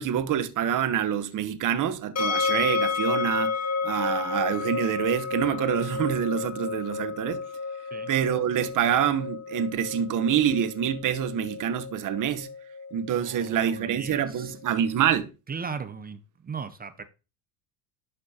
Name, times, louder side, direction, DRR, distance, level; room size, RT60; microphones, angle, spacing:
voice 1, 0.0-3.6 3.8-7.4 8.1-12.5 12.9-15.3, right 9 dB, 40° right, 1.0 m, -26 dB
sound 1, 2.2-15.1, left 5 dB, 35° left, 1.8 m, -32 dB
voice 2, 13.2-14.5 15.5-17.0, right 5 dB, 20° right, 0.7 m, -37 dB
12.0 x 4.3 x 2.8 m
hypercardioid pair, 75°, 47 cm